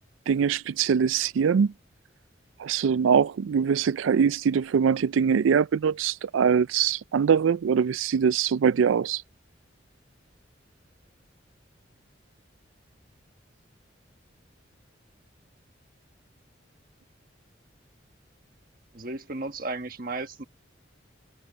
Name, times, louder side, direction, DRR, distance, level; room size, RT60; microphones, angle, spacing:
voice 1, 0.3-1.7 2.6-9.2, right 7 dB, 90° right, 0.4 m, -23 dB
voice 2, 18.9-20.4, right 2 dB, 45° right, 1.3 m, -34 dB
head